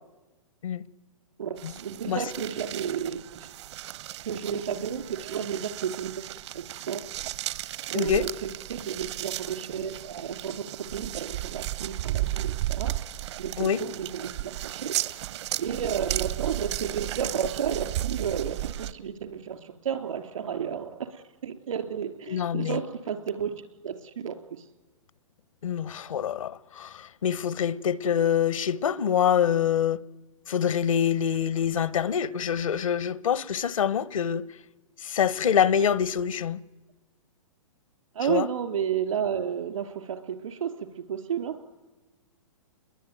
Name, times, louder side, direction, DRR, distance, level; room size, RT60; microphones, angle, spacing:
voice 1, 1.4-3.5 4.2-6.2 6.5-7.0 7.9-12.9 13.4-15.0 15.6-23.5 23.8-24.6 38.1-41.6, right 8 dB, 75° right, 3.2 m, -32 dB
sound 1, 1.6-18.9, right 14 dB, 55° right, 0.9 m, -34 dB
voice 2, 7.9-8.3 13.6-13.8 22.3-22.8 25.6-30.0 30.5-34.5 35.0-36.6 38.3-38.5, left 8 dB, 80° left, 1.0 m, -25 dB
29.0 x 21.5 x 9.3 m
hypercardioid pair, 130°, 17 cm